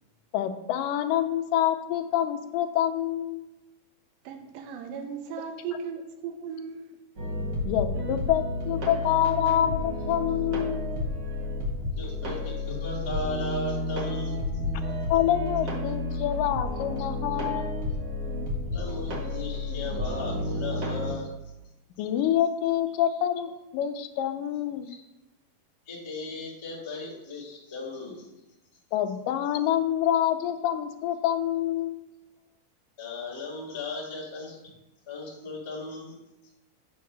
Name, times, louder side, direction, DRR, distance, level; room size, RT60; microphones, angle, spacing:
voice 1, 0.3-3.4 7.7-10.9 15.1-17.7 22.0-24.9 28.9-32.0, left 11 dB, 80° left, 6 dB, 2.0 m, -26 dB
voice 2, 4.2-6.9, right 6 dB, 75° right, 5 dB, 2.5 m, -37 dB
sound 1, 7.2-21.1, left 2 dB, 45° right, 1.3 m, -31 dB
voice 3, 12.0-14.4 18.7-21.3 24.8-24.9 25.9-28.3 33.0-34.5 35.1-36.1, left 2 dB, 30° left, -5 dB, 0.5 m, -36 dB
8.5 x 4.6 x 6.0 m, 0.96 s
omnidirectional pair, 4.4 m